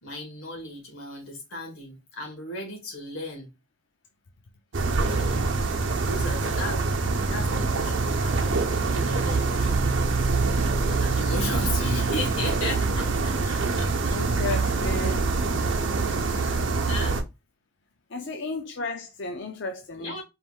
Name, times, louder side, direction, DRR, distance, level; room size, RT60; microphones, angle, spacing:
voice 1, 0.0-3.5 5.1-5.5 6.0-10.0 10.7-14.2 15.8-17.2 18.2-18.4 20.0-20.2, left 2 dB, 85° left, 2.0 m, -37 dB
sound 1, 4.7-17.2, right 3 dB, 65° right, 0.7 m, -25 dB
voice 2, 14.1-15.3 18.1-20.2, left 3 dB, 60° left, 0.6 m, -34 dB
4.6 x 2.6 x 3.6 m
head